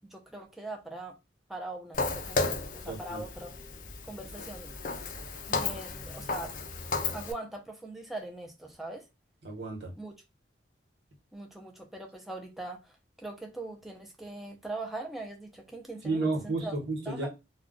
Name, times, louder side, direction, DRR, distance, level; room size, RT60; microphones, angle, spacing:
voice 1, 0.1-1.2 1.5-3.5 4.0-4.7 5.5-6.5 7.1-9.1 10.0-10.1 11.3-16.7 17.1-17.3, right 2 dB, ahead, 0.5 m, -41 dB
Walk footsteps, 1.9-7.3, left 3 dB, 45° left, 0.4 m, -34 dB
voice 2, 2.9-3.2 9.4-9.9 16.0-17.3, right 3 dB, 65° right, 1.1 m, -32 dB
2.3 x 2.3 x 3.7 m
head